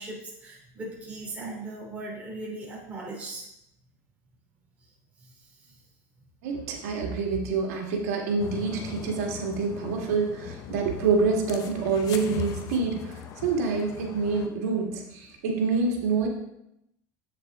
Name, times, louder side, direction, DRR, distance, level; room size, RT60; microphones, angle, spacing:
voice 1, 0.0-3.5 5.2-5.7, right 2 dB, 15° right, -5 dB, 3.3 m, -39 dB
voice 2, 6.4-16.3, right 4 dB, 90° right, 1 dB, 1.8 m, -27 dB
sound 1, 8.4-14.5, left 8 dB, 45° left, 0.8 m, -39 dB
8.3 x 6.8 x 3.7 m, 0.82 s
supercardioid pair, 130°, 8 cm